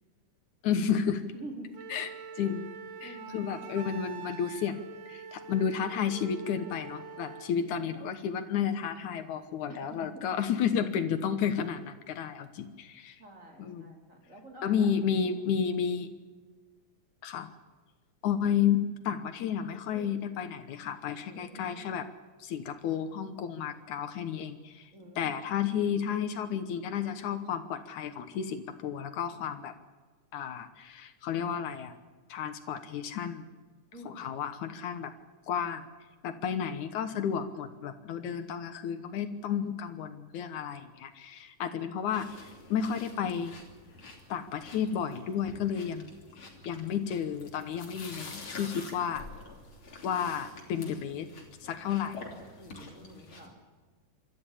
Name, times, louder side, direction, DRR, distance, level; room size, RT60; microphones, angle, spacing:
voice 1, 0.6-1.2 1.9-2.1 2.4-2.6 3.0-4.8 5.1-13.2 13.6-13.9 14.6-16.1 17.2-17.5 18.2-22.1 22.4-24.9 25.2-29.7 30.3-32.0 32.3-33.5 34.1-35.1 35.5-35.8 36.2-43.5 44.3-46.1 46.6-49.2 50.0-51.3 51.6-52.2, left 8 dB, 75° left, 10 dB, 2.5 m, -32 dB
voice 2, 1.3-1.7 3.0-3.7 8.0-8.2 9.7-10.2 13.2-14.9 15.2-15.4 19.9-20.1 21.2-21.7 24.9-25.3 33.9-34.3 52.6-53.6, right 1 dB, 25° right, 1 dB, 3.8 m, -48 dB
Wind instrument woodwind instrument, 1.7-7.6, right 5 dB, 85° right, 3.0 m, -45 dB
sound 1, 42.1-53.5, left 3 dB, 40° left, 3.8 m, -48 dB
26.0 x 13.5 x 10.0 m, 1.4 s
omnidirectional pair, 3.6 m